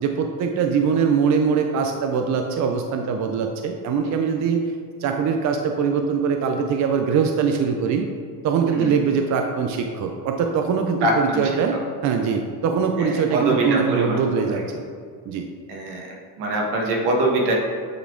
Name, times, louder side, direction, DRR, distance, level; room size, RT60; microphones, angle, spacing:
voice 1, 0.0-4.7 5.0-8.1 8.4-11.7 12.0-14.8 15.3-15.4, right 6 dB, 45° right, 4 dB, 0.4 m, -22 dB
voice 2, 11.0-11.5 13.0-14.6 15.7-17.5, right 1 dB, 75° right, -1 dB, 1.5 m, -24 dB
8.6 x 4.0 x 3.8 m, 2.1 s
cardioid pair, 160°, 41 cm